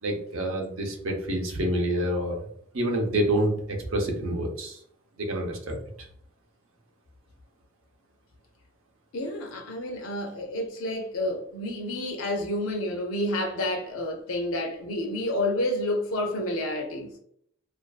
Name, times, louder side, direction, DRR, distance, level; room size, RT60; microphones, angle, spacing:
voice 1, 0.0-2.4 2.7-4.8 5.2-5.8, right 1 dB, 80° right, 0.7 m, -27 dB
voice 2, 9.1-17.1, left 1 dB, 80° left, 0.5 m, -29 dB
2.5 x 2.3 x 2.3 m
head